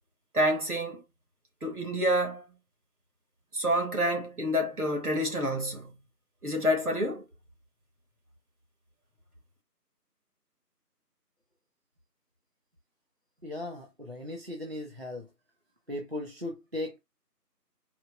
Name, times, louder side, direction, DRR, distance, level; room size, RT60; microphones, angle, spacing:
voice 1, 0.3-1.0 1.6-2.5 3.5-6.0 6.4-7.2, equal, 65° right, 1.9 m, -28 dB
voice 2, 13.4-15.3 15.9-17.0, left 1 dB, 40° right, 0.8 m, -37 dB
4.5 x 2.6 x 3.6 m
figure-of-eight pair, 175°, 49 cm